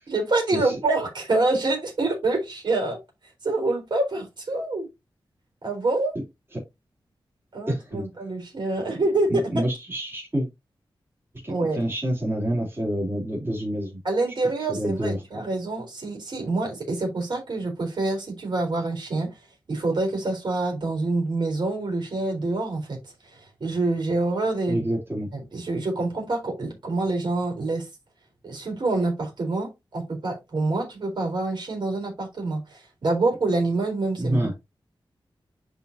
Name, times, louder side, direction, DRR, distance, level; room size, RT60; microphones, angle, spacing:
voice 1, 0.1-3.0 3.4-4.9 5.6-6.2 7.5-9.6 11.5-11.8 14.0-19.3 19.7-23.0 23.2-24.8 25.3-27.9 28.4-34.5, right 2 dB, 55° right, 4.2 m, -26 dB
voice 2, 7.7-8.0 9.3-10.5 11.4-14.0 14.7-15.2 24.7-25.3 34.2-34.5, right 1 dB, 25° right, 3.6 m, -27 dB
10.5 x 4.2 x 2.8 m
wide cardioid pair, 145°, 9 cm